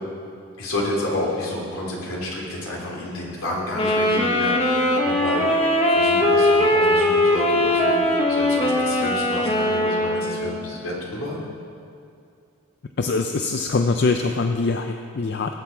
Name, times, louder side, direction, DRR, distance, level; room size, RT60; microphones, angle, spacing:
voice 1, 0.6-11.4, left 1 dB, 75° left, -4 dB, 2.9 m, -30 dB
Wind instrument woodwind instrument, 3.7-10.7, left 1 dB, 25° left, 1.0 m, -20 dB
voice 2, 13.0-15.5, left 3 dB, 50° left, 5 dB, 0.4 m, -23 dB
18.5 x 8.1 x 4.5 m, 2.4 s
head